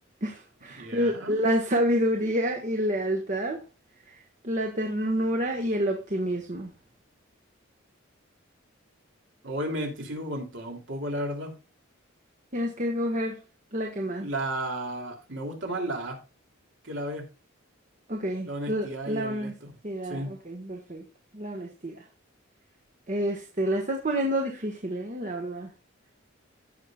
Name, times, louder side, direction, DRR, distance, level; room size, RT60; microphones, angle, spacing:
voice 1, 0.2-3.6 4.1-4.2 4.4-6.7 12.5-13.4 13.7-14.3 18.1-19.5 19.8-21.0 21.3-22.0 23.1-25.7, equal, 40° right, 1.4 m, -28 dB
voice 2, 0.7-1.4 9.4-11.5 14.2-16.2 16.8-17.3 18.5-19.7 20.0-20.3, right 1 dB, 65° right, 2.9 m, -33 dB
15.5 x 5.8 x 2.4 m
head